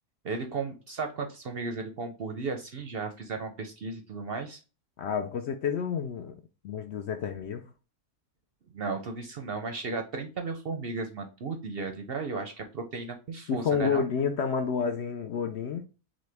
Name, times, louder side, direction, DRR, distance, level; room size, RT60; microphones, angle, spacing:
voice 1, 0.2-4.6 8.7-14.1, right 4 dB, 55° right, 0.7 m, -35 dB
voice 2, 5.0-6.4 6.6-7.6 13.5-15.9, left 6 dB, 65° left, 0.7 m, -29 dB
6.2 x 2.2 x 3.3 m
omnidirectional pair, 1.5 m